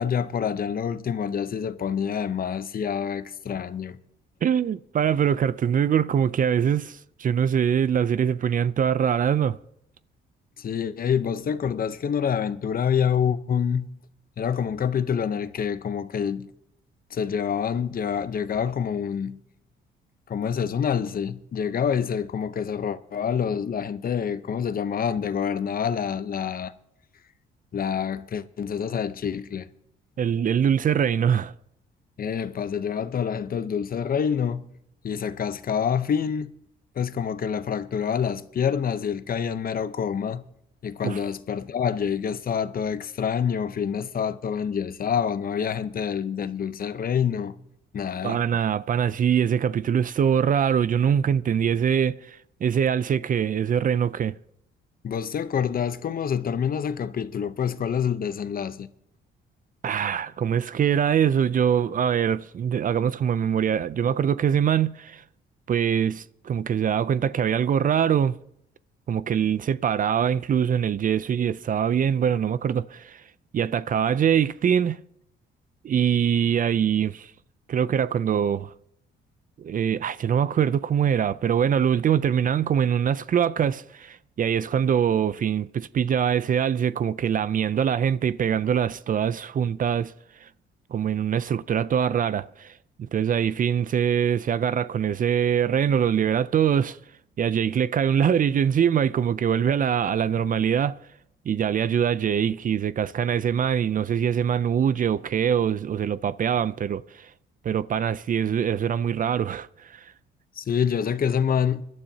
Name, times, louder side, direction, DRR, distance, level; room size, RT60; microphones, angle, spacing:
voice 1, 0.0-4.0 10.6-13.9 14.4-16.5 17.1-19.4 20.3-26.7 27.7-29.7 32.2-34.6 35.0-36.5 37.0-40.4 40.8-47.6 47.9-48.4 55.0-58.9 110.6-111.8, left 7 dB, 45° left, 0.8 m, -27 dB
voice 2, 4.4-9.6 30.2-31.5 41.0-41.2 48.2-54.4 59.8-65.2 65.7-68.3 69.1-73.2 73.5-75.0 75.8-77.3 77.7-78.7 79.6-90.1 90.4-90.5 90.9-92.7 93.0-97.0 97.4-101.0 101.5-107.3 107.6-110.1, right 8 dB, 45° right, 0.5 m, -23 dB
24.0 x 12.0 x 2.8 m
cardioid pair, 90°, 20 cm